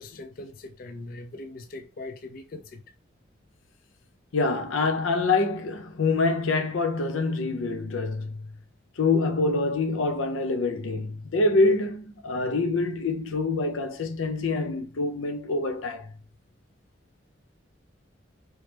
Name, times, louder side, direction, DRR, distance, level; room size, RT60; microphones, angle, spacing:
voice 1, 0.0-2.8, left 2 dB, 45° left, 0.3 m, -41 dB
voice 2, 4.3-8.4 9.0-16.1, left 3 dB, 90° left, 0.6 m, -25 dB
3.1 x 3.0 x 3.3 m
head